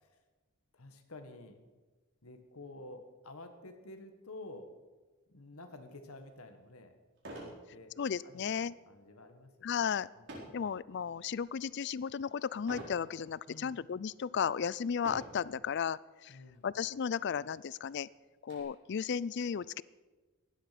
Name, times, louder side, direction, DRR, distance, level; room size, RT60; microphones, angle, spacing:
voice 1, 0.7-1.6 2.2-4.7 5.3-7.0 7.4-7.9 8.2-10.7 13.5-13.8 16.3-16.7, left 2 dB, 90° left, 6 dB, 1.6 m, -51 dB
sound 1, 6.2-6.3 7.2-7.6 8.1-8.4 10.3-10.6 11.3-11.7 12.7-13.0 13.8-13.9 15.0-15.5 16.5-16.6 16.9-17.0 17.5-18.6, right 1 dB, 55° right, 4.5 m, -46 dB
voice 2, 8.0-8.7 9.6-10.1 10.5-16.4 16.6-18.1 18.4-19.8, left 7 dB, 50° left, 21 dB, 0.4 m, -34 dB
16.0 x 11.5 x 5.9 m, 1.3 s
head